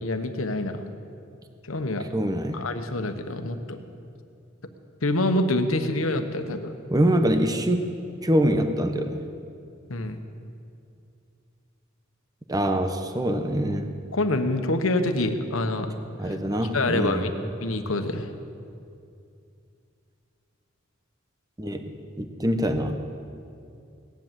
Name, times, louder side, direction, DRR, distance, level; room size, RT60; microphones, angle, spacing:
voice 1, 0.0-0.9 1.6-2.1 2.5-3.8 5.0-6.7 9.9-10.2 14.1-15.9 16.2-16.3 16.7-17.3 17.6-18.3, left 2 dB, 90° left, 7 dB, 1.2 m, -26 dB
voice 2, 2.1-2.6 6.9-7.8 8.2-9.2 12.5-13.9 16.2-17.3 21.6-23.0, equal, 20° right, 7 dB, 0.9 m, -24 dB
18.0 x 10.5 x 7.6 m, 2.5 s
head